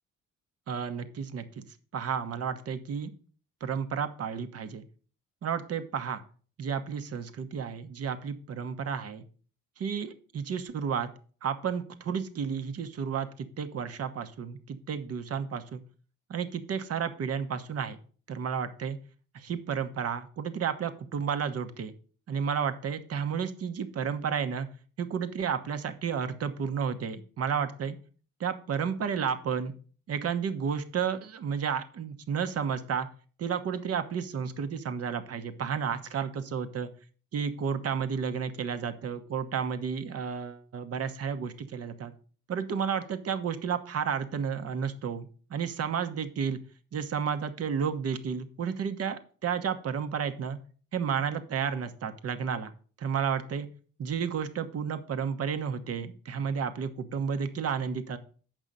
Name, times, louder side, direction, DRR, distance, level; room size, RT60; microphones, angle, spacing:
voice 1, 0.7-1.4 1.9-3.1 3.6-4.8 5.4-6.2 6.6-9.2 9.8-11.1 11.4-15.8 16.3-18.0 18.3-19.0 19.3-21.9 22.3-24.7 25.0-28.0 28.4-29.7 30.1-33.1 33.4-36.9 37.3-42.1 42.5-46.6 46.9-50.6 50.9-52.7 53.0-53.7 54.0-58.2, right 7 dB, 55° right, 9 dB, 1.0 m, -32 dB
7.6 x 5.4 x 5.3 m, 0.41 s
cardioid pair, 90°, 30 cm